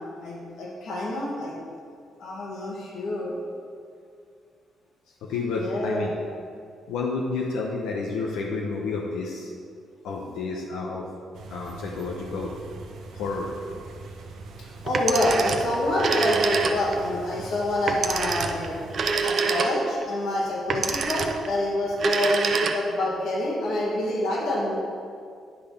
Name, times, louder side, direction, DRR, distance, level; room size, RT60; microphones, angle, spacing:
voice 1, 0.0-1.5 2.2-3.4 5.5-6.1 14.6-18.8 19.2-24.8, left 1 dB, 75° left, -4 dB, 1.6 m, -27 dB
voice 2, 5.2-6.1 6.9-9.5 10.0-11.1 11.5-12.5 13.1-13.5, left 4 dB, 90° left, -1 dB, 0.7 m, -30 dB
sound 1, 11.3-19.1, right 3 dB, 75° right, 0.8 m, -42 dB
Telephone, 14.9-17.1 17.9-20.0 20.7-21.5 21.9-23.1, right 5 dB, 50° right, 0.6 m, -26 dB
9.9 x 3.5 x 5.7 m, 2.2 s
cardioid pair, 90°, 0 cm